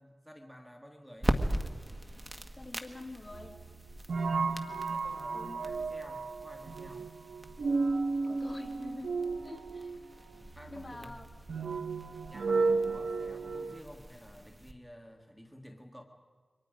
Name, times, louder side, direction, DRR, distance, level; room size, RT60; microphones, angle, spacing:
voice 1, 0.0-1.5 4.2-7.1 10.4-11.2 12.1-16.0, equal, 5° right, 2 dB, 1.8 m, -52 dB
sound 1, 1.2-14.7, right 1 dB, 20° right, 1.5 m, -41 dB
voice 2, 2.6-3.6 5.3-5.6 8.2-9.1 9.4-10.0 10.7-11.3, left 2 dB, 25° left, 2 dB, 2.6 m, -45 dB
sound 2, 3.3-13.8, right 4 dB, 85° right, 0.7 m, -34 dB
28.5 x 24.0 x 5.2 m, 1.5 s
wide cardioid pair, 85°, 0 cm